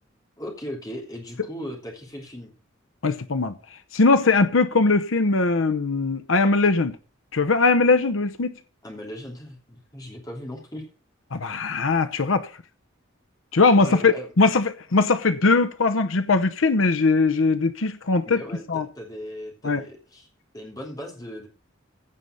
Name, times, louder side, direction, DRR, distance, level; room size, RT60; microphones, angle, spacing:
voice 1, 0.4-2.5 8.8-10.8 13.8-14.3 18.2-20.3 20.5-21.5, equal, 20° left, 3.1 m, -37 dB
voice 2, 3.0-3.5 3.9-7.0 7.3-8.5 11.3-12.5 13.5-18.4 18.7-18.9 19.6-19.8, left 3 dB, 80° left, 0.8 m, -20 dB
16.0 x 5.6 x 6.6 m
head